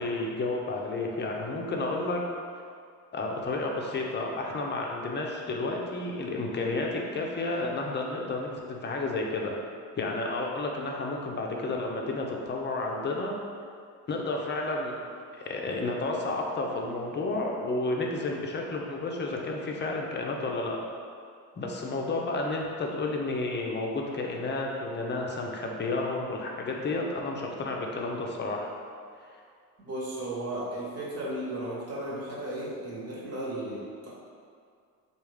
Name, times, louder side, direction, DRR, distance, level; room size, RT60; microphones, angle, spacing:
voice 1, 0.0-2.2 3.1-9.6 10.0-13.4 14.1-15.0 15.3-20.8 21.6-28.7 29.2-29.3, left 2 dB, 30° left, 0 dB, 0.5 m, -31 dB
voice 2, 29.8-34.1, right 1 dB, 40° right, -6 dB, 1.2 m, -35 dB
3.4 x 2.5 x 3.3 m, 2.2 s
supercardioid pair, 75°, 37 cm